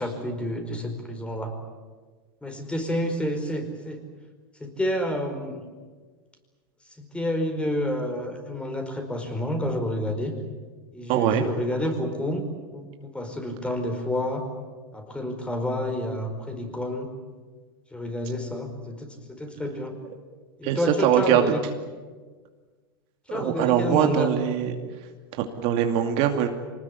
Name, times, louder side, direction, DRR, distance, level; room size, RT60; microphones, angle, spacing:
voice 1, 0.0-1.5 2.4-4.0 4.6-5.6 7.0-10.3 10.9-12.4 12.7-14.4 14.9-17.1 17.9-19.9 20.6-21.6 23.3-24.3, left 1 dB, 10° left, 5 dB, 4.8 m, -29 dB
voice 2, 11.1-11.5 20.6-21.4 23.3-24.7 25.4-26.5, right 10 dB, 55° right, 5 dB, 2.5 m, -22 dB
24.5 x 19.5 x 9.8 m, 1.4 s
hypercardioid pair, 110°, 12 cm